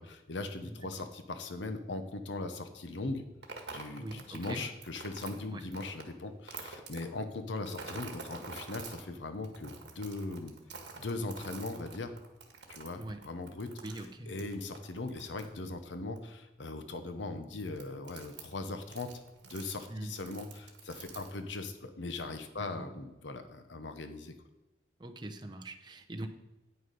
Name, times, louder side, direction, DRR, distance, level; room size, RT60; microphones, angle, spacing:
voice 1, 0.0-3.2 3.7-10.5 11.0-12.1 12.7-19.1 19.4-24.3, left 2 dB, 75° left, 8 dB, 0.8 m, -39 dB
voice 2, 0.6-1.1 4.0-4.6 5.5-5.6 13.0-13.2 13.8-14.4 19.9-20.1 22.6-22.9 25.0-26.3, right 1 dB, 25° right, 4 dB, 0.8 m, -42 dB
sound 1, 3.4-6.0 6.5-7.0 7.6-9.0 9.4-15.8 16.2-16.3 17.4-17.5 17.7-18.5 18.8-19.9 20.1-21.4, right 4 dB, 65° right, 1.7 m, -47 dB
9.4 x 6.4 x 5.2 m, 1.1 s
head